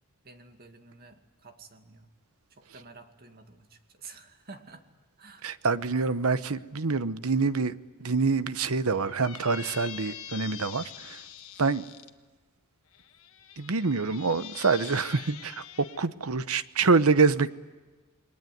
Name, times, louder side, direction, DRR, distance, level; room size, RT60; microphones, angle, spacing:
voice 1, 0.2-2.1 2.5-4.9 5.2-5.6, right 4 dB, 45° right, 6 dB, 2.3 m, -50 dB
voice 2, 5.4-11.2 11.6-11.9 13.6-17.5, right 4 dB, 70° right, 14 dB, 0.9 m, -26 dB
Squeak, 9.0-12.1 12.9-16.0, left 11 dB, 65° left, 1.5 m, -44 dB
28.0 x 21.5 x 9.4 m, 1.3 s
head